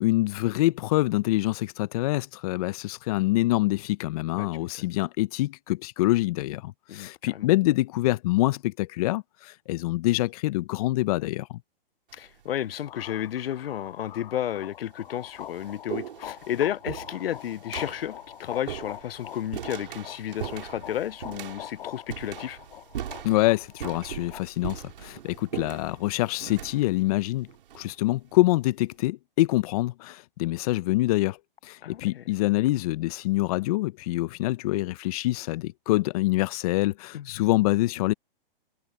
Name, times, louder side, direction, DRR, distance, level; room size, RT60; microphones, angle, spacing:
voice 1, 0.0-11.6 23.2-27.5 27.7-31.4 31.6-38.1, left 18 dB, 40° left, 0.7 m, -25 dB
voice 2, 6.9-7.5 12.1-22.6 31.8-32.2 37.1-37.3, left 11 dB, 80° left, 0.6 m, -32 dB
sound 1, 12.1-12.5 13.5-13.6 14.4-14.5 14.9-28.4, right 10 dB, 65° right, 3.8 m, -40 dB
sound 2, 12.8-24.4, left 11 dB, 60° left, 1.5 m, -44 dB
hypercardioid pair, 140°, 29 cm